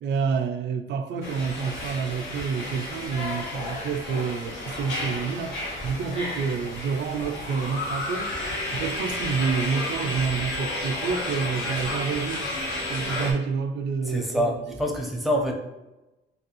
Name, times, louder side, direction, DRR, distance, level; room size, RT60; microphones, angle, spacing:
voice 1, 0.0-8.3 8.7-12.5 12.9-14.5, right 6 dB, 65° right, 0.4 m, -28 dB
sound 1, 1.2-13.3, left 1 dB, 75° left, 0.9 m, -32 dB
voice 2, 14.0-15.5, equal, ahead, 0.6 m, -26 dB
3.3 x 2.3 x 2.9 m
cardioid pair, 90°, 20 cm